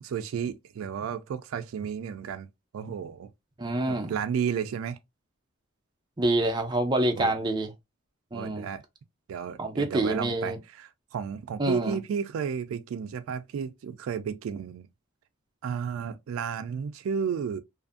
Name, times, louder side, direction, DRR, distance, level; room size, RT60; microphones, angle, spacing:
voice 1, 0.0-2.5 2.7-3.3 3.9-5.0 7.2-7.3 8.3-8.8 9.3-14.9 15.6-17.6, right 7 dB, 80° right, 0.3 m, -32 dB
voice 2, 3.6-4.1 6.2-7.7 8.3-8.7 9.6-10.6 11.6-12.0, right 1 dB, 20° right, 0.5 m, -27 dB
2.6 x 2.5 x 2.4 m
head